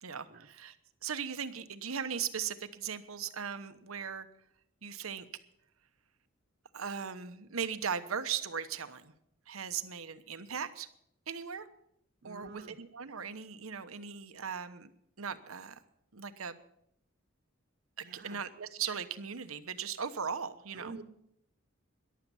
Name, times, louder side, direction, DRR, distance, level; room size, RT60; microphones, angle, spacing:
voice 1, 0.0-0.7 1.0-4.3 4.8-5.2 6.7-9.1 9.5-10.9 11.3-11.7 12.2-14.9 15.2-15.8 16.1-16.6 18.0-21.0, right 7 dB, 80° right, 10 dB, 1.1 m, -38 dB
voice 2, 12.2-12.8 18.0-18.4 20.7-21.0, right 3 dB, 50° right, 8 dB, 1.2 m, -48 dB
14.5 x 11.5 x 7.0 m, 0.74 s
head